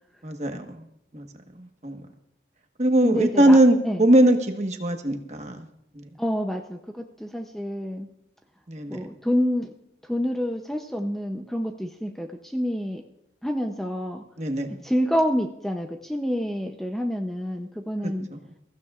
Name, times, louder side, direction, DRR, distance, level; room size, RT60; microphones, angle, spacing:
voice 1, 0.2-0.8 1.1-1.3 1.8-2.0 2.8-5.6 6.0-6.1 8.7-9.0 14.4-14.7, right 1 dB, 40° right, 5 dB, 1.3 m, -20 dB
voice 2, 3.0-3.6 3.8-4.1 6.2-8.1 8.9-9.7 10.0-13.0 13.4-14.2 14.7-18.3, equal, ahead, 3 dB, 0.6 m, -28 dB
23.0 x 15.0 x 2.4 m, 0.79 s
head